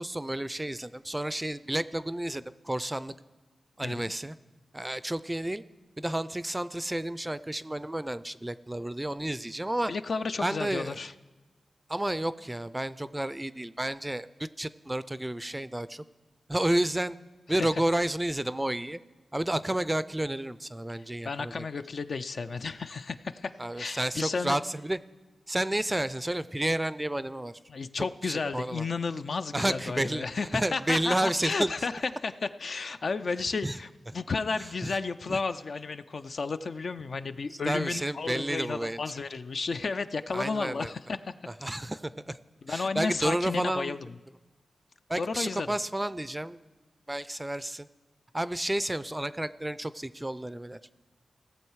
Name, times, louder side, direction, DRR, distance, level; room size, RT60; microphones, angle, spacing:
voice 1, 0.0-3.1 3.8-4.4 4.7-5.6 6.0-9.9 10.4-11.0 11.9-16.0 16.5-17.2 17.5-19.0 19.3-21.5 23.6-25.0 25.5-27.5 27.9-28.9 29.5-30.2 30.5-31.7 33.6-33.8 34.8-35.0 35.3-35.4 37.5-39.0 40.3-40.9 41.5-42.4 42.7-44.0 45.1-46.6 47.1-47.9 48.3-50.8, right 1 dB, 15° right, 16 dB, 0.4 m, -31 dB
voice 2, 9.9-11.1 17.5-17.7 21.2-23.5 23.8-24.6 27.7-31.9 32.2-33.9 34.1-41.3 42.6-44.0 45.2-45.8, left 4 dB, 65° left, 10 dB, 0.4 m, -32 dB
16.5 x 7.1 x 4.7 m, 1.2 s
cardioid pair, 50°, 0 cm